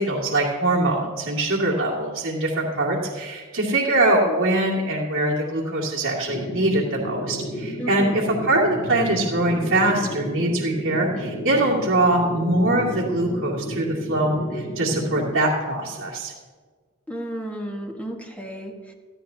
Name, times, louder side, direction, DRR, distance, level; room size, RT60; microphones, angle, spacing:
voice 1, 0.0-16.3, right 1 dB, 65° right, -6 dB, 2.2 m, -23 dB
sound 1, 6.3-15.3, equal, 60° left, 2.9 m, -32 dB
voice 2, 7.8-8.4 17.1-18.7, equal, 5° left, 0 dB, 1.7 m, -32 dB
20.0 x 14.0 x 2.8 m, 1.5 s
head